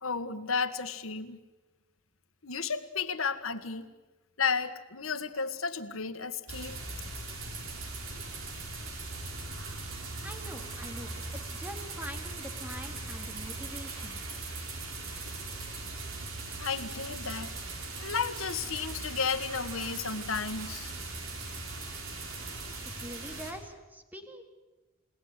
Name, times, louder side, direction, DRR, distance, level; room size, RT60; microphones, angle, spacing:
voice 1, 0.0-1.4 2.4-3.9 4.4-6.8 16.6-17.5 18.0-20.9, left 5 dB, 80° left, 9 dB, 1.7 m, -33 dB
sound 1, 6.5-23.5, right 3 dB, 80° right, 5.0 m, -39 dB
voice 2, 10.2-11.1 11.5-14.2 22.8-24.4, equal, 10° right, 5 dB, 2.6 m, -44 dB
30.0 x 18.5 x 9.9 m, 1.2 s
head